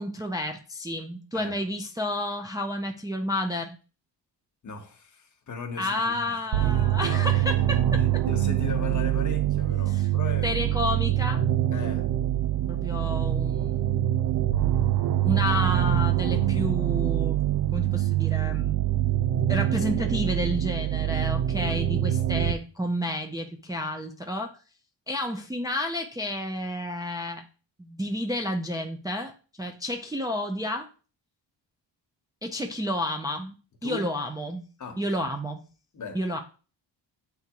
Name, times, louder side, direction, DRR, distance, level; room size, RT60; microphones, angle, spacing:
voice 1, 0.0-3.8 5.8-8.0 9.9-10.0 10.4-11.4 12.7-14.0 15.2-17.4 17.7-18.8 19.5-24.5 25.1-27.4 27.8-30.9 32.4-33.5 33.8-34.7 35.0-35.6 36.1-36.4, left 1 dB, 10° right, 0.5 m, -30 dB
voice 2, 4.6-7.2 8.2-10.8 11.7-12.1 21.5-21.8 33.8-34.1 34.8-35.3 35.9-36.3, left 5 dB, 40° left, 1.1 m, -39 dB
sound 1, 6.5-22.5, right 12 dB, 55° right, 0.6 m, -24 dB
9.2 x 3.5 x 2.9 m
wide cardioid pair, 150°, 44 cm